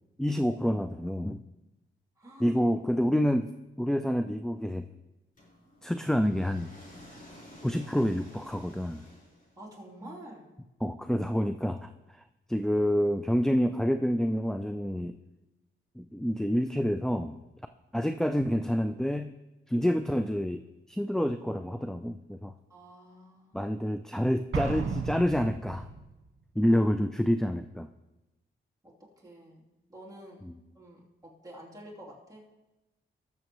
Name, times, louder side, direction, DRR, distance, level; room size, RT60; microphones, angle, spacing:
voice 1, 0.2-1.4 2.4-3.5 3.8-4.8 5.8-6.7 7.6-9.0 10.8-12.2 12.5-15.2 16.0-17.4 17.9-19.3 19.7-20.6 20.9-22.5 23.5-25.9 26.6-27.9 30.4-30.5, equal, ahead, 9 dB, 0.3 m, -28 dB
voice 2, 2.2-2.5 9.6-10.5 22.7-23.7 26.7-26.8 28.8-28.9 29.2-30.4 30.7-32.4, right 1 dB, 15° right, -5 dB, 3.0 m, -49 dB
sound 1, 5.4-9.8, left 1 dB, 40° left, 4.2 m, -52 dB
Explosion, 24.5-26.1, right 4 dB, 70° right, 1.5 m, -33 dB
19.5 x 6.9 x 3.1 m, 1.0 s
wide cardioid pair, 100°, 21 cm